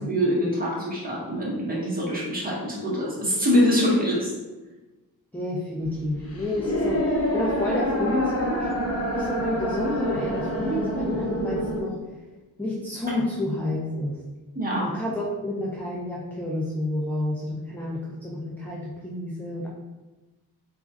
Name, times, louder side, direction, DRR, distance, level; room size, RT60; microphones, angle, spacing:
voice 1, 0.0-4.3 14.5-14.8, equal, 20° right, -6 dB, 1.3 m, -24 dB
voice 2, 5.3-8.7 9.1-12.0 12.6-14.2 14.8-19.7, left 1 dB, 5° left, -4 dB, 0.4 m, -29 dB
sound 1, 5.8-11.8, equal, 40° left, 0.8 m, -27 dB
4.2 x 2.5 x 2.4 m, 1.2 s
cardioid pair, 90°, 40 cm